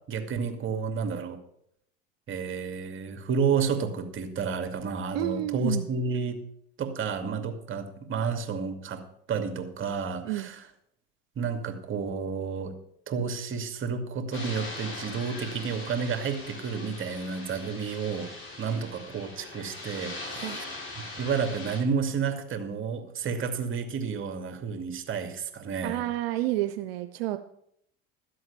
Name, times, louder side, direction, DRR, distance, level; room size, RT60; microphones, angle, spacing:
voice 1, 0.1-1.4 2.3-6.4 6.8-9.0 9.3-10.6 11.4-12.7 13.1-18.3 18.6-20.6 21.2-26.0, right 5 dB, 40° right, 6 dB, 2.5 m, -31 dB
voice 2, 5.1-5.9 10.2-10.5 20.4-20.6 25.8-27.4, right 15 dB, 85° right, 9 dB, 0.8 m, -30 dB
sound 1, 14.3-21.8, left 2 dB, 40° left, 5.6 m, -41 dB
13.0 x 7.8 x 6.9 m, 0.71 s
hypercardioid pair, 90°, 30 cm